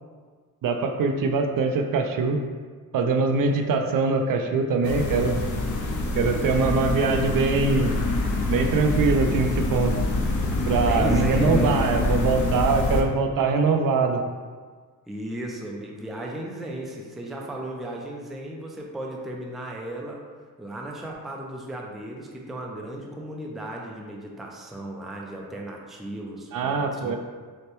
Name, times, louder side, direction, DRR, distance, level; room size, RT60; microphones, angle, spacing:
voice 1, 0.6-2.4 2.9-5.4 6.2-7.9 8.5-9.9 10.7-14.2 26.5-27.2, right 4 dB, 65° right, 5 dB, 0.5 m, -23 dB
sound 1, 4.8-13.0, left 2 dB, 55° left, 0.6 m, -25 dB
voice 2, 10.9-11.7 15.1-20.2 20.6-27.2, right 1 dB, ahead, -1 dB, 0.4 m, -35 dB
6.4 x 2.2 x 3.0 m, 1.5 s
cardioid pair, 125°, 36 cm